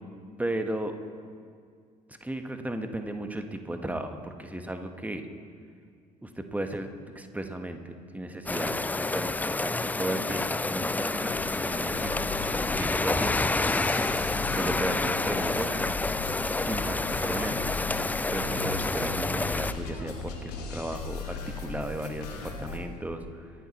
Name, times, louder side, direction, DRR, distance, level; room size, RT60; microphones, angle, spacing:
voice 1, 0.4-1.0 2.1-5.3 6.2-6.9 7.1-11.3 11.6-12.3 12.7-13.5 14.5-15.7 16.6-17.7 18.3-23.5, right 1 dB, 5° right, 6 dB, 1.3 m, -35 dB
sound 1, 8.5-19.7, left 2 dB, 10° left, 0.4 m, -29 dB
sound 2, 11.3-22.8, left 4 dB, 75° left, 1.4 m, -38 dB
23.5 x 11.0 x 3.1 m, 2.1 s
figure-of-eight pair, 55°, 20 cm